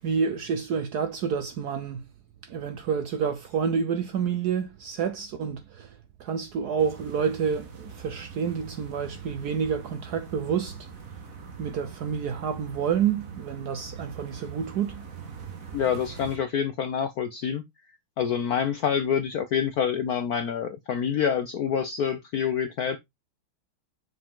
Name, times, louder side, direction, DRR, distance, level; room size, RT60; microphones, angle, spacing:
voice 1, 0.0-2.0 2.4-5.9 6.2-10.8 11.6-15.1, right 7 dB, 65° right, 1.0 m, -29 dB
sound 1, 6.8-16.4, right 5 dB, 45° right, 1.5 m, -43 dB
voice 2, 15.7-17.6 18.2-23.0, left 7 dB, 70° left, 0.9 m, -27 dB
6.4 x 4.9 x 3.6 m
omnidirectional pair, 2.3 m